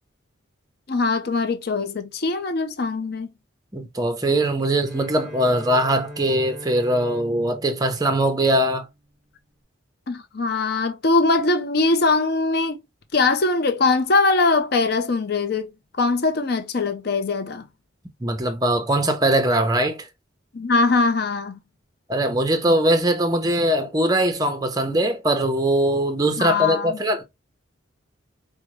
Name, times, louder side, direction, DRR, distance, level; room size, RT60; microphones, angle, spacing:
voice 1, 0.9-3.3 10.1-12.8 13.1-15.7 16.0-17.6 20.5-21.6 26.4-27.0, left 3 dB, 50° left, 0.6 m, -21 dB
voice 2, 3.7-8.9 18.2-20.1 22.1-27.2, right 1 dB, 20° right, 0.7 m, -21 dB
Bowed string instrument, 4.8-9.1, left 1 dB, 5° left, 1.2 m, -41 dB
5.0 x 2.2 x 3.0 m
head